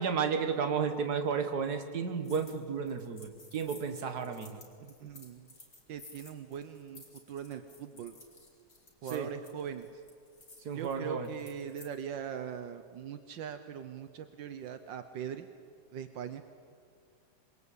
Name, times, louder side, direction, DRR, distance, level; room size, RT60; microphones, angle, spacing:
voice 1, 0.0-4.6 9.1-9.3 10.7-11.3, right 6 dB, 60° right, 7 dB, 2.1 m, -32 dB
sound 1, 2.2-2.6 2.9-11.9, left 2 dB, 40° left, 3.7 m, -55 dB
voice 2, 4.8-5.5 5.9-8.1 9.0-10.0 10.7-15.5 15.9-16.4, right 8 dB, 80° right, 9 dB, 1.7 m, -41 dB
26.5 x 22.0 x 8.5 m, 2.1 s
omnidirectional pair, 2.0 m